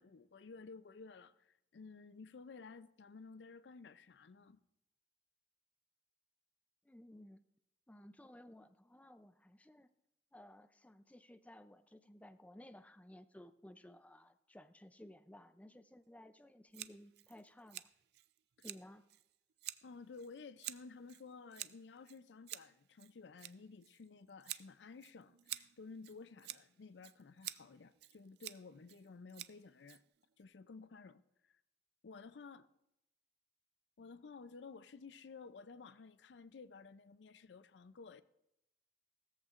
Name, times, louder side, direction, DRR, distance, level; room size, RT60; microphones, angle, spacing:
voice 1, 0.0-4.6 19.8-30.0 30.4-31.5 32.0-32.7 34.0-38.2, left 4 dB, 75° left, 0.5 m, -54 dB
voice 2, 6.8-7.4 7.9-9.9 10.3-17.9 18.6-19.1, left 1 dB, 10° left, 0.4 m, -57 dB
Scissors, 16.7-30.4, right 15 dB, 65° right, 0.4 m, -51 dB
16.5 x 14.0 x 2.5 m
head